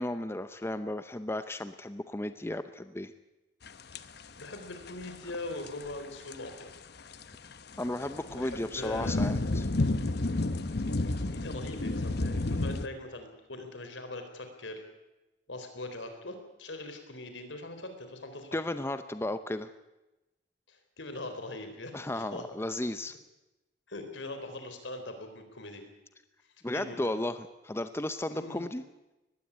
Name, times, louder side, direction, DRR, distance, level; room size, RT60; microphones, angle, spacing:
voice 1, 0.0-3.1 7.8-9.7 18.5-19.7 21.9-23.1 26.6-28.8, left 1 dB, 15° left, 10 dB, 0.7 m, -34 dB
sound 1, 3.7-4.4 4.9-5.2 5.5-6.5 7.0-12.9, left 2 dB, 60° left, 1.0 m, -31 dB
voice 2, 4.3-6.7 8.2-9.3 11.0-14.8 15.5-18.6 20.7-22.5 23.9-25.8 26.7-27.1 28.3-28.7, left 2 dB, 75° left, 7 dB, 4.0 m, -41 dB
20.0 x 15.5 x 10.0 m, 1.0 s
head